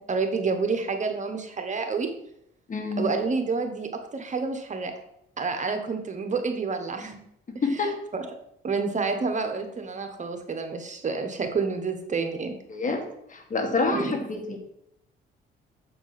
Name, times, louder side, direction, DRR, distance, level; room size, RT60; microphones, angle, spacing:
voice 1, 0.0-2.1 3.0-4.9 5.4-7.2 7.8-8.3 8.6-12.5 13.9-14.2, right 4 dB, 35° right, 6 dB, 1.2 m, -29 dB
voice 2, 2.7-3.1 7.6-7.9 12.7-13.0 13.3-14.6, left 3 dB, 40° left, 2 dB, 2.0 m, -27 dB
7.4 x 4.6 x 5.9 m, 0.76 s
cardioid pair, 90°, 20 cm